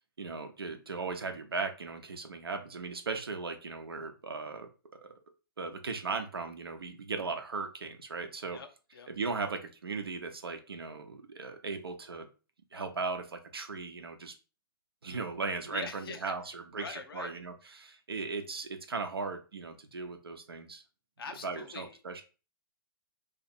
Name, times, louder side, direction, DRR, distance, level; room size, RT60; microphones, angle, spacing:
voice 1, 0.2-5.1 5.6-8.6 9.1-12.3 12.7-14.3 15.0-20.8 21.4-22.2, right 4 dB, 90° right, 0.7 m, -37 dB
voice 2, 8.5-9.1 15.7-16.3 16.8-17.3 21.2-22.0, left 5 dB, 75° left, 0.7 m, -43 dB
2.6 x 2.5 x 4.2 m
hypercardioid pair, 125°, 12 cm